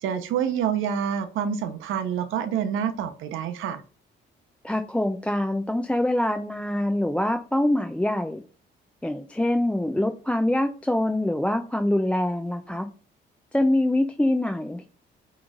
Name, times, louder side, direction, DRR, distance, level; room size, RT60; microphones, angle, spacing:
voice 1, 0.0-3.8, right 8 dB, 85° right, 9 dB, 0.8 m, -27 dB
voice 2, 4.6-8.4 9.0-12.9 13.5-14.9, left 1 dB, 5° left, 6 dB, 0.4 m, -24 dB
6.1 x 3.1 x 2.4 m, 0.38 s
cardioid pair, 90°, 20 cm